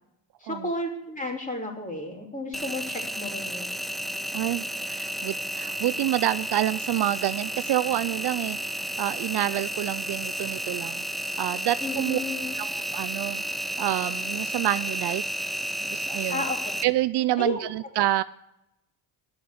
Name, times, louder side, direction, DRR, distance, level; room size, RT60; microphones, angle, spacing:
voice 1, 0.4-3.7 11.8-12.6 16.3-16.6 17.4-17.7, left 1 dB, 15° left, 0 dB, 3.3 m, -32 dB
Engine, 2.5-16.8, equal, ahead, 0.5 m, -32 dB
voice 2, 4.3-11.0 11.4-12.2 12.6-13.4 13.8-15.2 15.8-16.4 16.8-18.2, right 15 dB, 65° right, 15 dB, 0.5 m, -28 dB
10.5 x 6.9 x 7.6 m, 0.86 s
cardioid pair, 90°, 44 cm